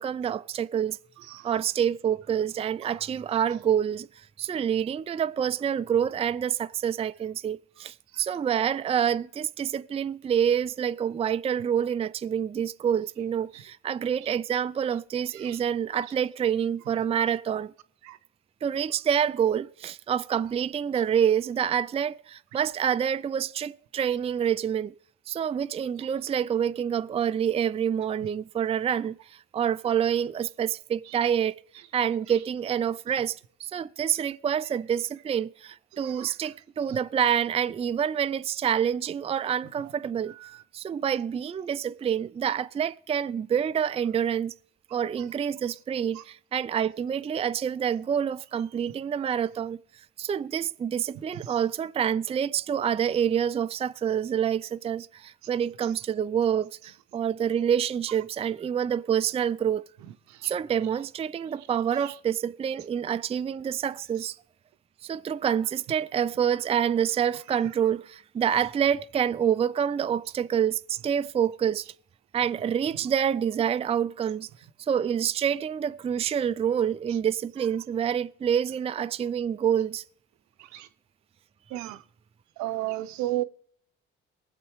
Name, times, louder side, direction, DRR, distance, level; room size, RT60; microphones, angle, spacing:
voice 1, 0.0-1.0 1.4-17.7 18.6-24.9 25.3-31.5 31.9-40.3 40.7-44.5 44.9-49.8 50.2-59.8 60.4-64.4 65.0-71.9 72.3-74.5 74.8-80.0, right 8 dB, 20° right, 0.4 m, -27 dB
voice 2, 1.2-1.6 2.8-3.0 8.1-8.2 13.5-13.6 14.2-14.4 15.3-15.6 18.0-18.2 31.0-31.2 32.3-32.4 36.0-36.5 36.9-37.0 40.3-40.6 45.2-45.3 46.1-46.3 51.3-51.6 55.8-55.9 60.0-60.5 61.9-62.1 64.2-64.3 77.1-77.2 80.6-80.9 81.7-82.0 82.6-83.4, right 15 dB, 70° right, 0.7 m, -36 dB
22.5 x 7.5 x 3.1 m
hypercardioid pair, 55°, 30 cm